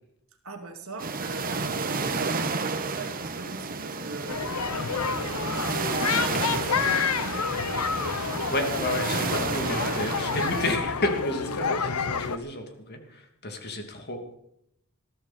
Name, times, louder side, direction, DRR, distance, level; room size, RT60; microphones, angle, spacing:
voice 1, 0.4-4.6 5.7-7.7, right 2 dB, 70° right, 4 dB, 2.5 m, -40 dB
sound 1, 1.0-10.8, right 4 dB, 40° right, 1.4 m, -31 dB
sound 2, 4.3-12.4, left 6 dB, 90° left, 1.0 m, -29 dB
voice 2, 8.1-14.4, left 1 dB, 50° left, 4 dB, 2.9 m, -31 dB
20.5 x 14.0 x 4.4 m, 0.76 s
head